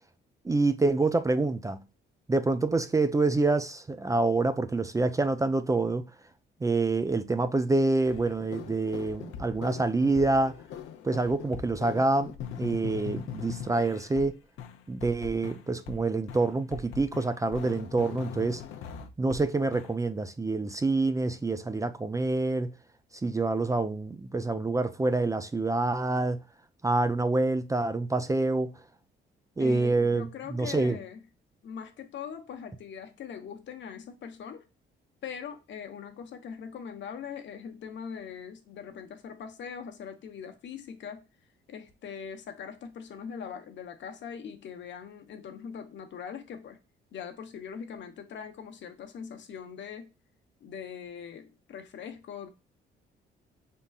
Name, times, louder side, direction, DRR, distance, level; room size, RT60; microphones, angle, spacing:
voice 1, 0.4-1.8 2.3-6.1 6.6-10.6 11.0-14.4 14.9-18.6 19.2-22.7 23.2-26.4 26.8-28.7 29.6-31.0, right 3 dB, 15° right, 0.4 m, -27 dB
sound 1, 8.1-14.3 14.6-16.0 16.3-19.4 19.7-19.9, left 8 dB, 85° left, 0.7 m, -41 dB
voice 2, 29.6-31.2 31.6-34.6 35.2-41.2 41.7-46.8 47.1-50.1 50.6-52.5, left 7 dB, 65° left, 1.0 m, -41 dB
5.3 x 3.7 x 2.3 m
cardioid pair, 90°, 20 cm